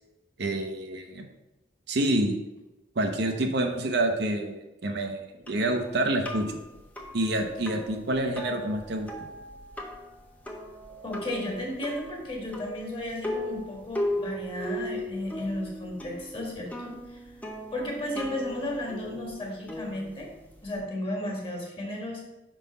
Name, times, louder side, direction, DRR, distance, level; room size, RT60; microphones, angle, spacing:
voice 1, 0.4-1.3 1.9-2.4 3.0-6.6 7.1-9.1, right 1 dB, 65° right, 4 dB, 0.7 m, -27 dB
sound 1, 5.5-20.8, left 1 dB, 10° left, 0.8 m, -38 dB
voice 2, 11.0-17.2 17.7-20.3 20.6-22.2, left 1 dB, 30° left, -2 dB, 1.6 m, -34 dB
5.2 x 3.8 x 5.2 m, 0.99 s
head